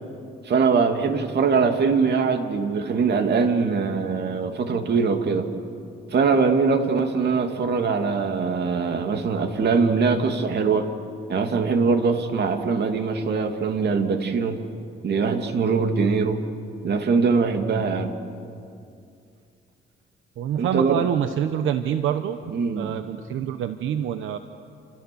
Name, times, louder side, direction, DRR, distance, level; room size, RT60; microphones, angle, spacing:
voice 1, 0.4-5.5 6.1-10.9 11.3-14.6 15.0-16.4 16.8-18.1 20.6-21.0 22.5-22.9, right 5 dB, 55° right, 6 dB, 2.6 m, -22 dB
voice 2, 20.4-24.4, right 9 dB, 80° right, 9 dB, 1.0 m, -26 dB
29.0 x 28.0 x 7.0 m, 2.5 s
cardioid pair, 90°, 20 cm